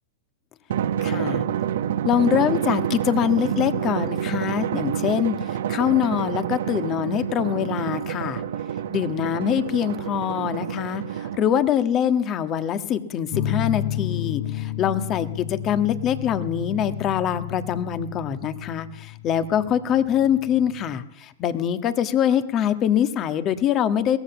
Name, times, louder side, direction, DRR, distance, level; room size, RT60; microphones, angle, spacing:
Drum, 0.7-11.7, right 9 dB, 70° right, 1.2 m, -28 dB
voice 1, 1.0-1.4 2.0-8.4 8.9-24.2, left 9 dB, 35° left, 11 dB, 1.6 m, -24 dB
sound 1, 13.3-21.0, left 11 dB, 55° left, 1.1 m, -32 dB
22.5 x 17.5 x 7.2 m, 0.80 s
hypercardioid pair, 115°, 0 cm